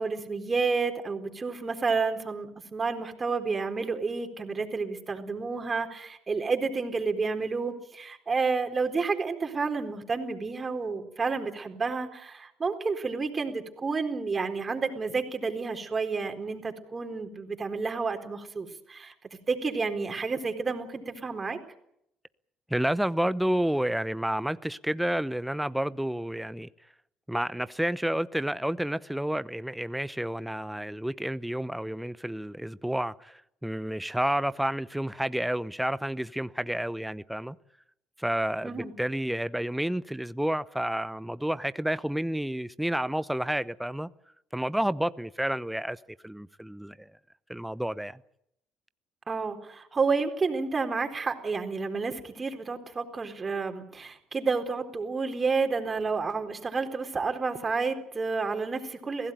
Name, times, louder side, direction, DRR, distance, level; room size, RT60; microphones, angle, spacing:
voice 1, 0.0-19.1 19.5-21.6 38.6-38.9 49.3-59.3, right 4 dB, 35° right, 4.1 m, -30 dB
voice 2, 22.7-26.7 27.3-37.5 38.2-44.1 44.5-47.1 47.5-48.2, right 1 dB, 5° right, 0.8 m, -30 dB
24.0 x 16.5 x 9.3 m
hypercardioid pair, 55°, 0 cm